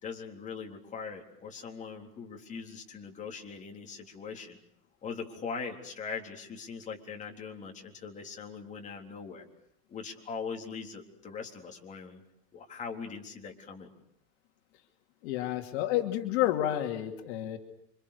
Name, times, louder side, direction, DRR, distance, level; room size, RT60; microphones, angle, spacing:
voice 1, 0.0-4.6 5.0-9.5 9.9-12.2 12.5-13.9, left 5 dB, 20° left, 1 dB, 3.8 m, -41 dB
voice 2, 15.2-17.6, left 13 dB, 60° left, 4 dB, 2.8 m, -30 dB
29.0 x 26.0 x 6.7 m, 0.74 s
supercardioid pair, 155°, 36 cm